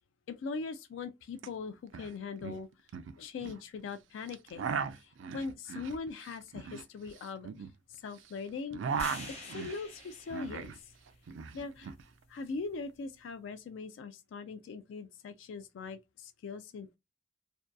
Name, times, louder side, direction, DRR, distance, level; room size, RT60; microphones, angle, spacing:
voice 1, 0.3-2.7 3.1-4.7 5.0-7.5 7.9-8.8 9.4-10.7 11.5-11.9 12.3-17.0, left 4 dB, 80° left, 0.3 m, -41 dB
sound 1, 1.4-1.5 1.7-2.1 2.4-3.6 4.3-8.3 8.5-10.8 11.1-12.0, right 6 dB, 80° right, 0.3 m, -38 dB
sound 2, 8.9-13.1, left 2 dB, 35° left, 0.8 m, -50 dB
2.6 x 2.2 x 2.2 m
head